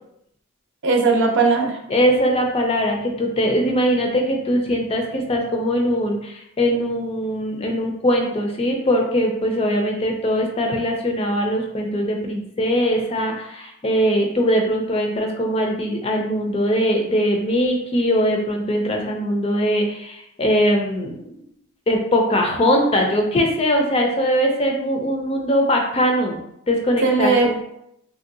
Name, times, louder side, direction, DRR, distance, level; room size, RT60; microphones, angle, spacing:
voice 1, 0.8-1.8 27.0-27.6, right 4 dB, 55° right, 1 dB, 0.6 m, -18 dB
voice 2, 1.9-21.1 21.9-26.4 26.7-27.5, equal, 25° left, 2 dB, 0.4 m, -21 dB
3.1 x 2.6 x 2.6 m, 0.77 s
head